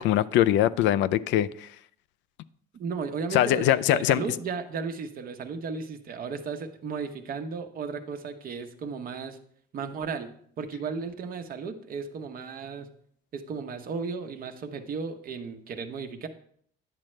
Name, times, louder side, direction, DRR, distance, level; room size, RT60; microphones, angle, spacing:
voice 1, 0.0-1.7 3.3-4.2, left 12 dB, 70° left, 14 dB, 0.4 m, -22 dB
voice 2, 2.7-9.4 9.7-12.9 13.3-16.3, right 5 dB, 45° right, 6 dB, 1.0 m, -35 dB
10.5 x 7.5 x 3.3 m, 0.63 s
cardioid pair, 135°, 20 cm